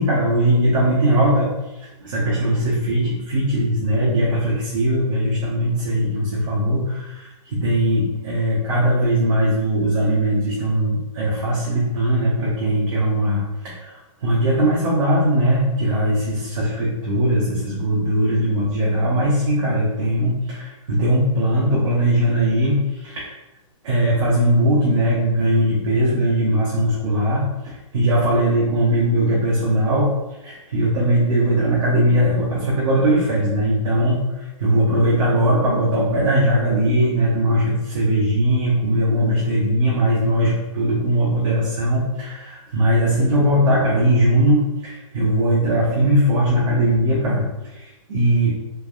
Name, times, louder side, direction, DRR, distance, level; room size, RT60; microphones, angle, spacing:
voice 1, 0.0-1.5 1.8-23.3 23.8-30.1 30.4-34.2 34.6-48.5, right 1 dB, 60° right, -6 dB, 0.9 m, -20 dB
3.3 x 2.2 x 2.3 m, 0.98 s
hypercardioid pair, 160°, 18 cm